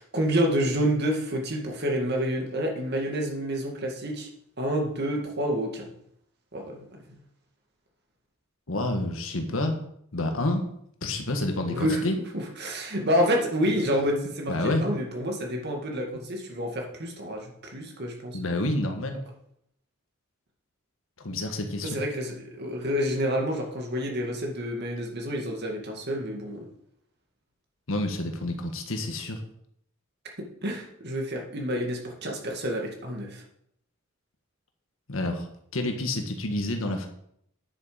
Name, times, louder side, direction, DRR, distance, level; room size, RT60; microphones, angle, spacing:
voice 1, 0.0-4.3 4.6-5.9 6.5-6.8 11.7-12.0 12.6-18.4 21.8-26.7 30.4-33.4, equal, 55° right, 1 dB, 2.2 m, -28 dB
voice 2, 8.7-9.8 10.1-10.6 11.0-12.2 14.5-14.9 18.3-19.3 21.2-22.0 27.9-29.4 35.1-35.5 35.7-37.1, left 1 dB, 80° left, 5 dB, 1.6 m, -28 dB
9.9 x 7.1 x 5.2 m, 0.71 s
head